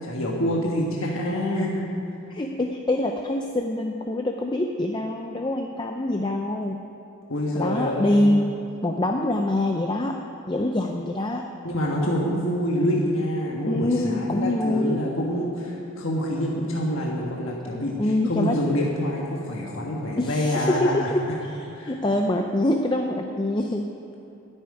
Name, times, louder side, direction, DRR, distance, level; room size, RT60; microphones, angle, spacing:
voice 1, 0.0-1.8 7.3-8.3 11.6-18.0 18.3-21.1 21.7-21.9, equal, 65° left, -2 dB, 1.5 m, -26 dB
voice 2, 2.3-6.8 7.5-8.5 8.8-10.2 10.5-11.5 13.6-15.0 18.0-18.6 20.2-23.9, left 1 dB, 20° left, 3 dB, 0.5 m, -25 dB
10.5 x 8.5 x 9.7 m, 2.9 s
head